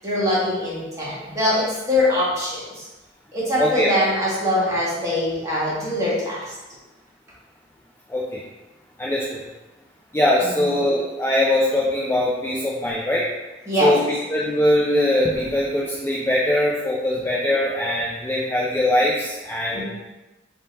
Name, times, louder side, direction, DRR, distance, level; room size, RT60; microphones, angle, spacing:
voice 1, 0.0-2.9 3.3-6.4 10.4-10.7 13.7-13.9 19.7-19.8, left 1 dB, 20° right, -8 dB, 1.4 m, -23 dB
voice 2, 3.6-3.9 8.1-8.4 9.0-9.4 10.1-13.3 13.8-14.0 14.3-19.8, left 1 dB, 15° left, -5 dB, 0.4 m, -21 dB
3.7 x 2.8 x 4.0 m, 1.1 s
head